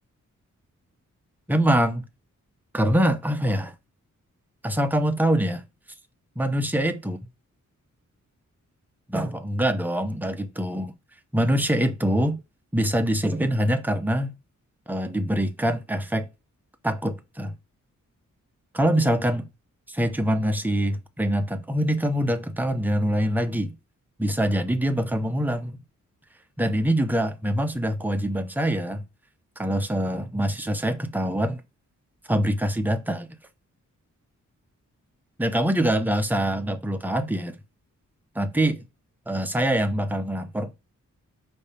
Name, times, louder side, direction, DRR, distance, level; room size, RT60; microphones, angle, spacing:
voice 1, 1.5-2.0 2.7-3.7 4.6-5.6 6.4-7.2 9.1-10.9 11.3-12.4 12.7-14.4 14.9-16.3 16.8-17.5 18.7-19.5 19.9-23.7 24.2-25.8 26.6-29.0 29.6-31.6 32.3-33.3 35.4-37.5 38.3-38.8 39.3-40.7, equal, 5° right, 0.8 m, -24 dB
5.4 x 4.8 x 4.2 m
wide cardioid pair, 155°, 31 cm